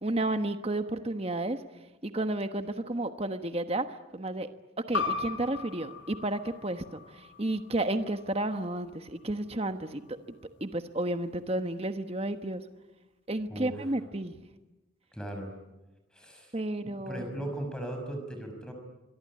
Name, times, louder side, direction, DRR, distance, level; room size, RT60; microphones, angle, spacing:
voice 1, 0.0-4.5 4.9-10.2 10.6-12.6 13.3-14.5 16.5-17.3, right 1 dB, 30° right, 8 dB, 1.2 m, -32 dB
sound 1, 4.9-10.1, left 4 dB, 80° left, 4.5 m, -38 dB
voice 2, 15.1-15.5 16.1-16.5 16.8-18.7, right 1 dB, 5° left, 4 dB, 5.9 m, -38 dB
26.0 x 23.0 x 9.9 m, 1.1 s
head